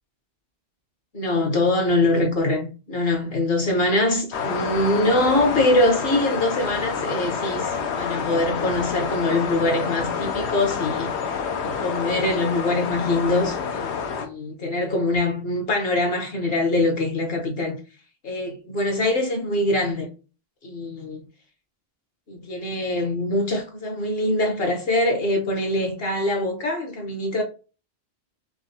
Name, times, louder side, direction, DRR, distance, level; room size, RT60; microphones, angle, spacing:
voice 1, 1.1-11.1 11.6-17.8 18.2-20.1 20.6-21.2 22.3-27.4, left 1 dB, 65° left, 1.2 m, -23 dB
sound 1, 4.3-14.3, left 6 dB, 85° left, 1.0 m, -28 dB
3.9 x 3.4 x 2.7 m
omnidirectional pair, 1.1 m